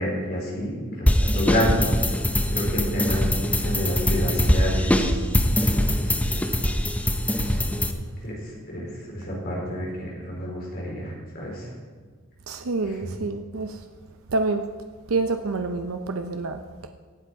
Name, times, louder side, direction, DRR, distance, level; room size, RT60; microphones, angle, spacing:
voice 1, 0.0-1.9 2.5-5.2 5.7-6.4 7.3-7.6 8.2-11.7 12.9-13.1, equal, 50° left, -3 dB, 4.1 m, -29 dB
sound 1, 1.1-7.9, left 1 dB, 5° left, 0.6 m, -22 dB
voice 2, 12.5-13.8 14.3-14.6 15.1-16.9, right 3 dB, 85° right, 7 dB, 0.6 m, -27 dB
17.0 x 7.6 x 4.7 m, 1.5 s
head